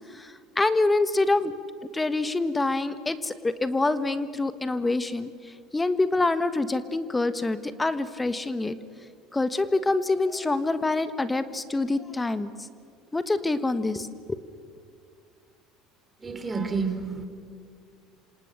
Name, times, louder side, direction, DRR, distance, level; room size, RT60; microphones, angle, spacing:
voice 1, 0.1-1.5 1.9-5.3 5.7-8.7 9.3-12.5 13.1-14.1, left 2 dB, 15° left, 13 dB, 1.4 m, -26 dB
voice 2, 16.2-17.2, right 4 dB, 25° right, 8 dB, 3.7 m, -29 dB
27.5 x 27.0 x 6.7 m, 2.3 s
figure-of-eight pair, 65°, 0 cm